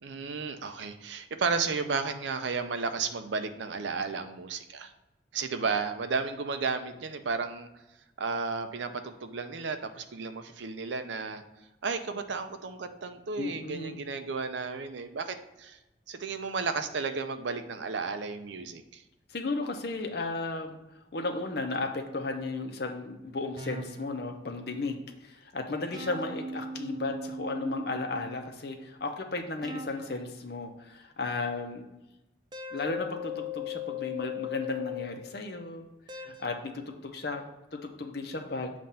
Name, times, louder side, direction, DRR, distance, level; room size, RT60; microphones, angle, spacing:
voice 1, 0.0-4.9 5.3-7.7 8.2-11.4 11.8-15.8 16.1-19.0 36.3-36.4, right 4 dB, 80° right, 8 dB, 0.6 m, -33 dB
voice 2, 13.4-14.0 19.3-20.8 21.1-31.8 32.7-35.9 36.2-37.4 37.7-38.7, left 3 dB, 55° left, 4 dB, 0.7 m, -34 dB
sound 1, 23.6-24.1 25.9-28.3 29.6-30.1 32.5-35.3 36.1-36.5, left 4 dB, 25° right, 0.4 m, -38 dB
7.4 x 2.6 x 5.5 m, 0.97 s
head